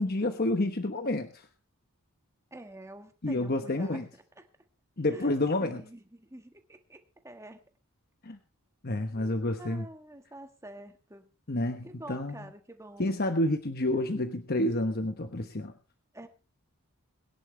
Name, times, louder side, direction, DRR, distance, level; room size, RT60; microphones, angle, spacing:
voice 1, 0.0-1.5 3.2-4.1 5.0-5.8 8.2-8.4 8.8-9.8 11.5-12.5 13.0-15.7, left 1 dB, 45° left, 7 dB, 1.1 m, -29 dB
voice 2, 2.5-4.0 4.4-4.5 5.1-5.3 5.6-7.0 7.2-7.6 9.1-11.3 11.8-13.1 16.1-16.3, right 1 dB, 15° right, 6 dB, 1.6 m, -47 dB
22.0 x 10.5 x 3.3 m, 0.31 s
head